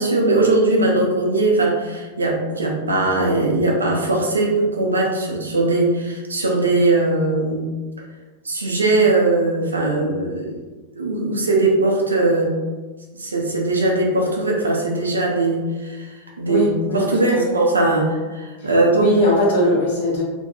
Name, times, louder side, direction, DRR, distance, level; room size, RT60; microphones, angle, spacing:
voice 1, 0.0-7.6 8.4-10.5 11.0-12.5 13.1-16.7 16.9-19.1, right 2 dB, 75° right, -1 dB, 0.5 m, -20 dB
voice 2, 16.5-17.6 18.6-20.2, left 1 dB, 60° left, -5 dB, 1.0 m, -21 dB
2.6 x 2.2 x 2.7 m, 1.3 s
figure-of-eight pair, 90°, 0 cm